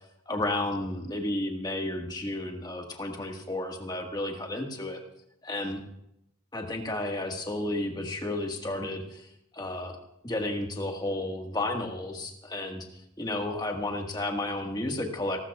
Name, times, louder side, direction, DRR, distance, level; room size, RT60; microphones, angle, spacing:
voice 1, 0.3-5.0 5.4-5.8 6.5-9.3 9.5-10.0 10.2-12.8 13.2-15.4, left 1 dB, 20° left, 2 dB, 1.6 m, -32 dB
29.5 x 13.0 x 2.4 m, 0.79 s
head